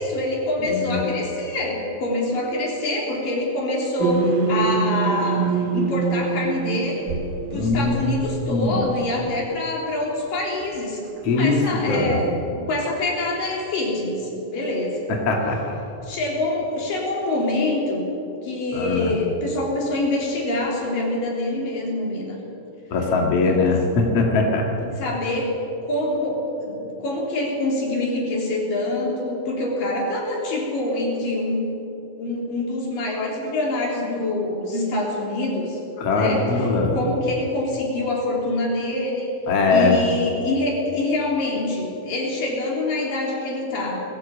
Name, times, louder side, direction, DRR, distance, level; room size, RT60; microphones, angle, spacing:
voice 1, 0.0-5.4 5.7-7.0 7.5-11.1 11.3-15.1 16.0-18.1 18.4-22.4 23.5-23.8 24.8-25.6 25.8-31.7 32.2-35.8 36.1-39.3 39.7-44.0, left 2 dB, 85° left, -2 dB, 5.2 m, -25 dB
sound 1, 4.0-8.8, right 5 dB, 80° right, 3.1 m, -24 dB
voice 2, 7.5-8.2 8.5-8.8 11.2-11.6 11.9-12.2 15.3-15.6 18.7-19.1 22.9-24.7 36.0-36.9 39.5-40.0, left 3 dB, 50° left, 0 dB, 3.0 m, -21 dB
21.0 x 15.0 x 8.4 m, 2.9 s
omnidirectional pair, 3.8 m